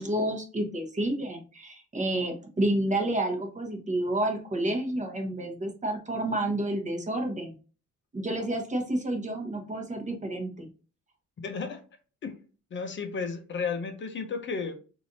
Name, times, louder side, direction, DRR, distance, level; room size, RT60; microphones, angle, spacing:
voice 1, 0.0-7.5 8.1-10.7, right 1 dB, 25° right, 3 dB, 1.0 m, -30 dB
voice 2, 11.4-11.8 12.2-12.4 12.7-14.7, left 5 dB, 40° left, 6 dB, 0.7 m, -33 dB
3.3 x 2.6 x 3.9 m, 0.36 s
cardioid pair, 140°, 31 cm